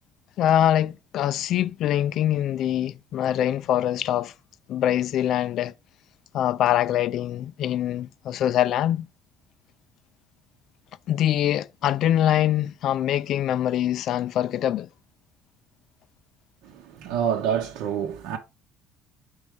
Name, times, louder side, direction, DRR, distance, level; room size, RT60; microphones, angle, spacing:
voice 1, 0.4-4.3 4.7-5.7 6.3-9.1 11.1-14.9, left 11 dB, 50° left, 0.3 m, -24 dB
voice 2, 16.6-18.4, right 8 dB, 85° right, 1.0 m, -27 dB
5.3 x 4.7 x 4.8 m
cardioid pair, 170°, 0 cm